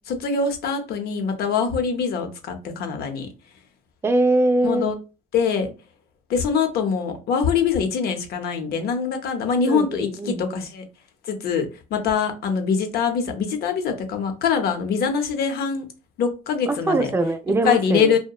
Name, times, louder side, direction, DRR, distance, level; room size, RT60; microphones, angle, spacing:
voice 1, 0.1-3.3 4.6-4.9 5.3-5.7 6.3-10.8 11.3-11.7 11.9-15.8 16.2-17.1 17.6-18.2, left 6 dB, 65° left, 0.6 m, -23 dB
voice 2, 4.0-4.9 9.7-10.6 16.7-18.1, right 2 dB, 15° right, 0.3 m, -22 dB
2.7 x 2.1 x 2.3 m
cardioid pair, 110°, 17 cm